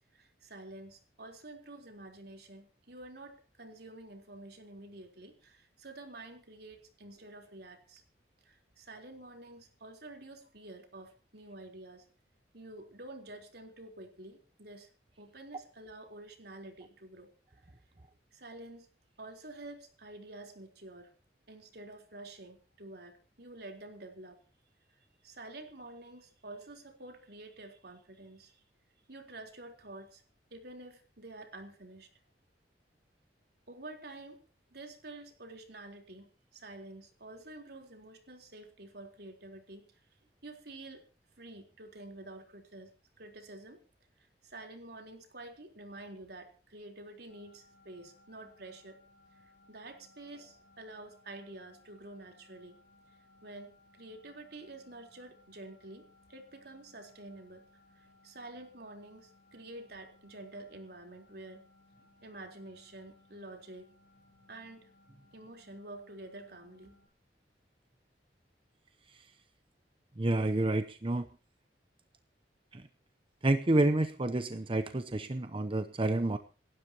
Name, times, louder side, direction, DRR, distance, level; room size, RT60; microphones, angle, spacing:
voice 1, 0.1-8.0 8.4-12.1 12.5-14.9 15.2-17.3 17.5-17.7 18.3-18.9 19.2-21.1 21.5-24.4 25.2-28.6 29.1-30.2 30.5-32.1 33.7-34.4 34.7-40.0 40.4-41.1 41.4-42.9 43.2-43.8 44.2-49.0 49.3-52.8 53.4-57.6 57.9-61.7 62.2-63.9 64.5-64.9 65.3-67.0, right 2 dB, 65° right, 3 dB, 3.9 m, -49 dB
sound 1, 47.3-67.1, left 2 dB, 75° left, 6.1 m, -64 dB
voice 2, 70.2-71.3 72.7-72.8 73.4-76.4, right 2 dB, 30° right, 10 dB, 0.8 m, -29 dB
28.0 x 12.5 x 3.0 m, 0.36 s
head